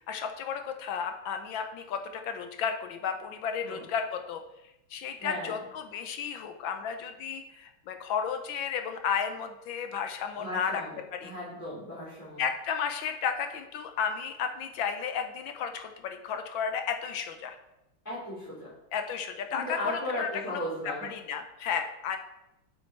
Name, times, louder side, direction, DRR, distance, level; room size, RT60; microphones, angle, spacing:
voice 1, 0.1-4.4 4.9-10.8 11.1-11.3 12.4-17.6 18.9-20.6 21.1-22.2, left 7 dB, 75° left, 6 dB, 1.4 m, -33 dB
voice 2, 5.2-5.5 10.4-12.4 18.0-18.7 19.5-21.1, left 1 dB, 10° left, -11 dB, 3.1 m, -36 dB
7.4 x 6.4 x 4.4 m, 0.89 s
omnidirectional pair, 2.4 m